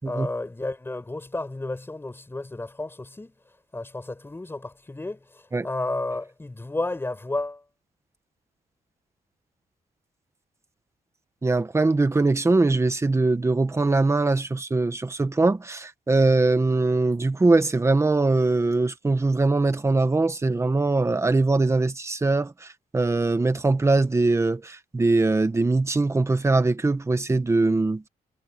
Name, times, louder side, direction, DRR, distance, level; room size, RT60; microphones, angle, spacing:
voice 1, 0.0-3.3 3.7-7.6, left 2 dB, 15° left, 6.6 m, -32 dB
voice 2, 11.4-22.5 22.9-28.0, right 3 dB, 15° right, 1.4 m, -22 dB
wide cardioid pair, 155°, 16 cm